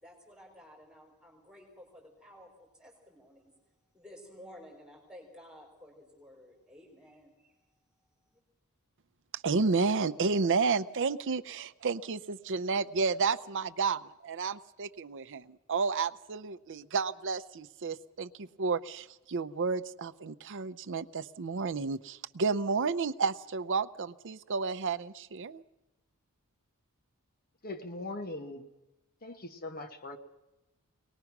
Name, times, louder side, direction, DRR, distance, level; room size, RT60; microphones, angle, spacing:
voice 1, 0.0-3.5 3.9-7.6 8.3-8.4, equal, 5° right, 0 dB, 4.1 m, -53 dB
voice 2, 9.3-25.6, right 4 dB, 55° right, 12 dB, 0.6 m, -31 dB
voice 3, 27.6-28.7 29.2-30.2, left 2 dB, 40° left, 7 dB, 1.2 m, -40 dB
22.5 x 19.5 x 6.0 m, 0.98 s
head